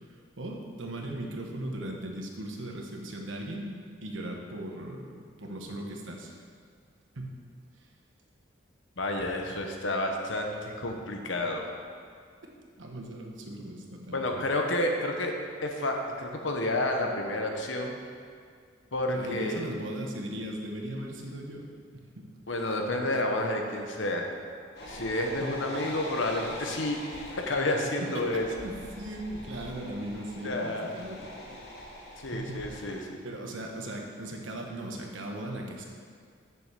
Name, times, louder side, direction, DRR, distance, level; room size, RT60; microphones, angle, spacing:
voice 1, 0.1-3.7 4.0-6.4 7.1-7.4 12.8-14.4 19.1-21.7 22.1-22.3 25.4-25.6 28.0-31.6 32.3-32.9 33.2-35.9, right 1 dB, 80° right, 1 dB, 1.3 m, -38 dB
voice 2, 9.0-11.7 14.1-15.3 15.6-18.0 18.9-19.7 22.5-24.3 24.9-27.0 27.3-28.5 30.4-30.9 32.2-33.2, left 1 dB, 80° left, 2 dB, 1.2 m, -30 dB
sound 1, 24.8-33.0, left 1 dB, 55° left, 1.6 m, -43 dB
7.0 x 6.9 x 6.7 m, 2.1 s
head